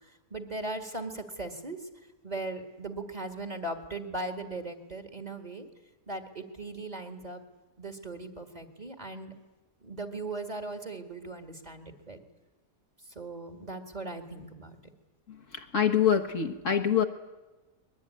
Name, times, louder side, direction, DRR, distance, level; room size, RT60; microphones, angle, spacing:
voice 1, 0.0-1.8 2.2-5.7 6.1-7.4 7.8-9.3 9.8-12.2 13.2-14.8, right 2 dB, 25° right, 6 dB, 2.0 m, -38 dB
voice 2, 15.3-17.0, left 8 dB, 50° left, 3 dB, 1.5 m, -26 dB
22.0 x 21.5 x 9.7 m, 1.1 s
omnidirectional pair, 1.7 m